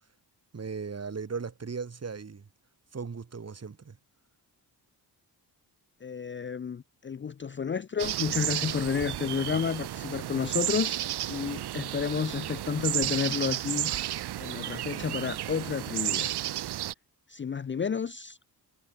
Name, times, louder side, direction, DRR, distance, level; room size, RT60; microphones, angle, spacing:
voice 1, 0.5-2.5 2.9-4.0, right 5 dB, 40° right, 2.5 m, -37 dB
voice 2, 6.0-11.0 11.3-13.9 14.4-16.3 17.3-18.4, left 6 dB, 30° left, 0.5 m, -31 dB
sound 1, 8.0-16.9, right 13 dB, 70° right, 0.7 m, -32 dB
cardioid pair, 95°, 40 cm